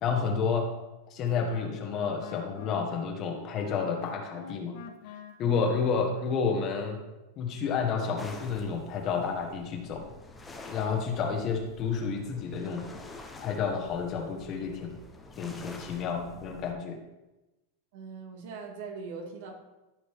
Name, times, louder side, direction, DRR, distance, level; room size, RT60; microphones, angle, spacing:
voice 1, 0.0-0.7 1.1-4.7 5.4-7.0 7.4-10.0 10.7-12.9 13.4-14.9 15.4-17.0, left 5 dB, 35° left, 3 dB, 1.4 m, -30 dB
Wind instrument woodwind instrument, 1.2-6.5, left 8 dB, 60° left, 1.0 m, -47 dB
sound 1, 8.2-16.7, left 3 dB, 10° left, 1.0 m, -47 dB
voice 2, 17.9-19.6, right 4 dB, 65° right, 2 dB, 2.0 m, -41 dB
13.0 x 5.1 x 3.6 m, 1.0 s
supercardioid pair, 145°, 0 cm